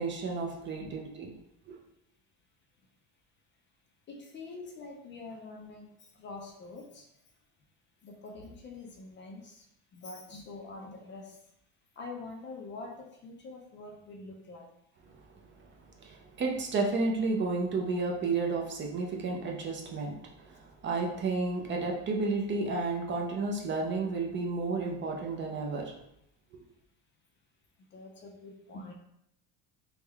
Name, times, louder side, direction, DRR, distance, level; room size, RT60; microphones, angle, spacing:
voice 1, 0.0-1.3 1.7-1.8 16.0-25.9, right 3 dB, 30° right, 1 dB, 0.4 m, -32 dB
voice 2, 4.1-7.1 8.0-9.6 9.9-11.4 12.0-14.7 27.9-28.9, left 3 dB, 30° left, 2 dB, 0.4 m, -45 dB
3.5 x 2.1 x 3.4 m, 0.75 s
cardioid pair, 135°, 37 cm